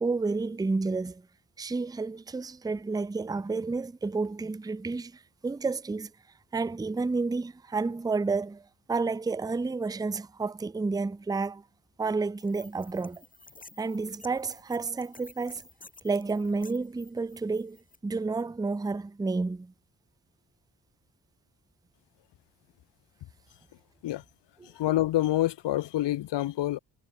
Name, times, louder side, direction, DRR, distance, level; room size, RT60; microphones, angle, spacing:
voice 1, 0.0-1.2 1.6-6.1 6.5-8.6 8.9-11.6 12.0-13.2 13.8-15.6 16.0-17.8 18.0-19.7 24.6-24.7, right 3 dB, 10° right, 0.5 m, -30 dB
sound 1, 12.4-18.0, left 2 dB, 20° left, 2.6 m, -53 dB
voice 2, 24.8-26.8, left 14 dB, 90° left, 0.6 m, -27 dB
cardioid pair, 80°, 41 cm